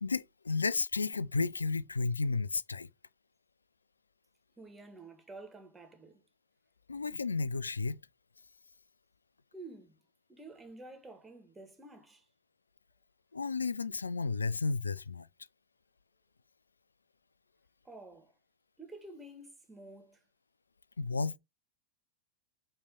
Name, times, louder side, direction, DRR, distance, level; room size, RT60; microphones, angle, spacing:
voice 1, 0.0-2.9 6.9-8.0 13.3-15.3 21.0-21.4, left 4 dB, 75° left, 0.4 m, -32 dB
voice 2, 4.6-6.3 9.5-10.0 10.3-12.3 17.8-18.3 18.8-20.2, right 2 dB, 10° right, 1.9 m, -50 dB
8.6 x 3.3 x 3.8 m
figure-of-eight pair, 90°, 0 cm